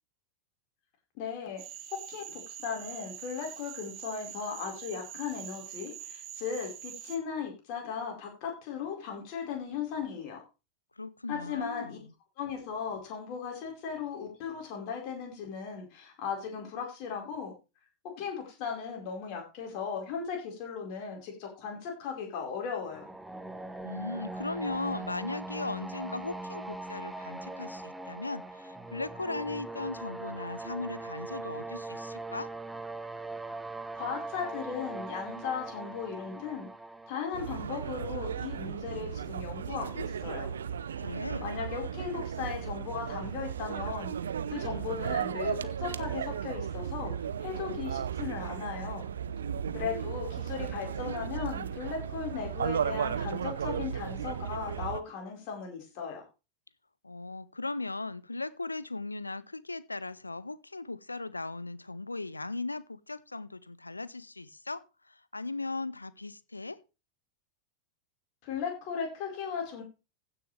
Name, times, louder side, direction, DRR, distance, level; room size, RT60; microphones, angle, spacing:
voice 1, 1.1-1.6 1.9-10.4 11.3-12.0 12.4-17.5 18.2-23.1 33.9-36.7 37.1-40.5 41.4-44.1 44.5-47.1 47.4-49.1 49.7-56.2 68.4-69.8, left 6 dB, 45° left, 4.5 m, -37 dB
Cricket / Frog, 1.6-7.2, right 10 dB, 35° right, 1.9 m, -45 dB
voice 2, 11.0-12.0 23.8-32.5 41.0-41.5 57.0-64.8 65.1-66.8, left 3 dB, 80° left, 0.6 m, -38 dB
sound 1, 22.8-38.6, right 2 dB, 5° right, 1.0 m, -41 dB
sound 2, 37.3-55.0, right 8 dB, 65° right, 0.6 m, -35 dB
15.5 x 6.9 x 3.3 m
figure-of-eight pair, 90°, 0 cm